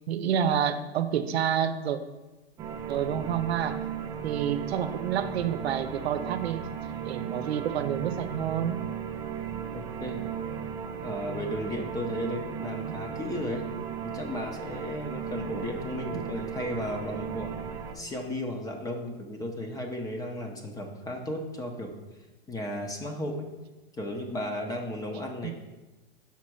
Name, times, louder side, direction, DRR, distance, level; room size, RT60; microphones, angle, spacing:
voice 1, 0.0-2.0 2.9-3.8 4.2-6.7 7.0-8.8 12.9-13.1 25.4-25.5, right 9 dB, 85° right, 9 dB, 0.7 m, -29 dB
sound 1, 2.6-17.9, right 7 dB, 15° right, 0.3 m, -36 dB
voice 2, 9.7-10.3 11.0-13.7 14.1-17.5 17.9-21.9 22.5-23.5 24.0-25.5, left 1 dB, 10° left, 3 dB, 0.7 m, -34 dB
5.9 x 4.2 x 6.2 m, 1.1 s
hypercardioid pair, 135°, 31 cm